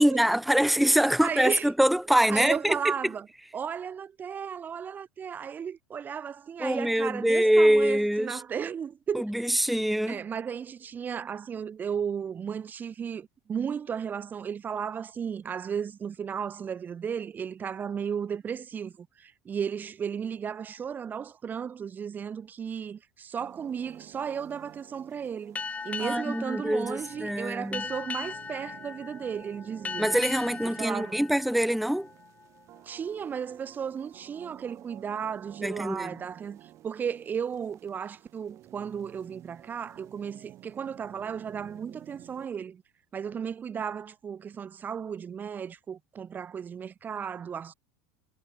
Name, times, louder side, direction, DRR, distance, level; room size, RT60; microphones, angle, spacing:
voice 1, 0.0-2.8 6.6-8.4 9.1-10.2 26.0-27.8 30.0-32.1 35.6-36.1, equal, ahead, 1.0 m, -24 dB
voice 2, 1.2-1.7 2.3-3.3 3.5-9.2 10.1-25.6 25.8-30.1 30.6-31.2 32.8-42.8 43.1-47.7, right 7 dB, 25° right, 1.2 m, -34 dB
sound 1, 23.4-42.5, right 14 dB, 45° right, 3.1 m, -52 dB
Boat Water vehicle, 25.6-32.6, left 5 dB, 20° left, 2.8 m, -39 dB
supercardioid pair, 125°, 7 cm